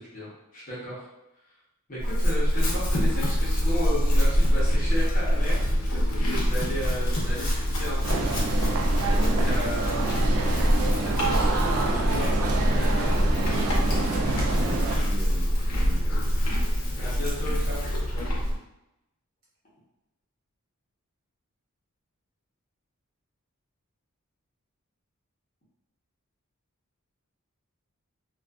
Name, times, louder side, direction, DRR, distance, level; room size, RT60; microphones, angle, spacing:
voice 1, 0.1-1.1 1.9-8.2 9.4-12.6 17.0-17.8, left 1 dB, 40° left, -9 dB, 0.9 m, -35 dB
Chewing mastication / Livestock farm animals working animals, 2.0-18.5, equal, 90° left, 0.7 m, -24 dB
sound 1, 8.0-15.0, right 3 dB, 70° right, 0.4 m, -28 dB
voice 2, 9.1-9.5 13.0-16.2 18.1-18.3, left 1 dB, 45° right, -8 dB, 1.1 m, -39 dB
2.5 x 2.4 x 2.3 m, 0.90 s
head